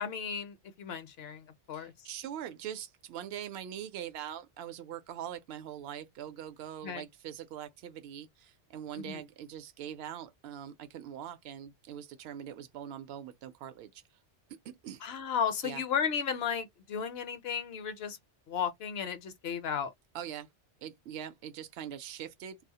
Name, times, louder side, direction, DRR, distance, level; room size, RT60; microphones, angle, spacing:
voice 1, 0.0-1.9 6.8-7.0 9.0-9.2 15.0-18.2 18.5-19.9, left 7 dB, 65° left, 0.8 m, -34 dB
voice 2, 1.7-14.0 14.5-15.0 15.6-15.8 20.1-20.5 20.8-22.6, right 10 dB, 65° right, 0.8 m, -42 dB
2.3 x 2.0 x 2.7 m
omnidirectional pair, 1.2 m